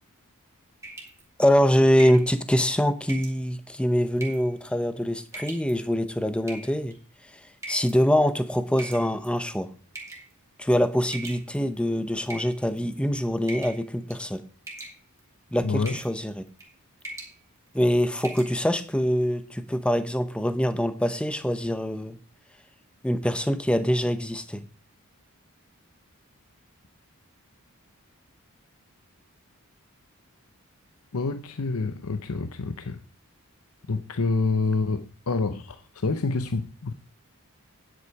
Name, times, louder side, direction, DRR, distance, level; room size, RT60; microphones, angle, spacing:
sound 1, 0.8-1.2 2.0-2.3 3.1-3.4 4.2-4.5 5.3-5.7 6.5-6.9 7.6-8.0 8.8-9.4 9.9-10.3 11.1-11.8 12.3-12.9 13.5-13.8 14.1-14.4 14.7-15.2 15.8-16.1 16.5-16.7 17.0-17.3 17.7-17.8 18.2-18.5, right 2 dB, 15° right, 2.2 m, -40 dB
voice 1, 1.4-7.0 7.7-9.7 10.6-14.4 15.5-16.5 17.7-22.2 23.0-24.6, equal, 5° left, 0.7 m, -24 dB
voice 2, 15.6-16.0 31.1-33.0 33.9-36.9, left 3 dB, 80° left, 0.7 m, -27 dB
9.7 x 8.3 x 4.7 m
head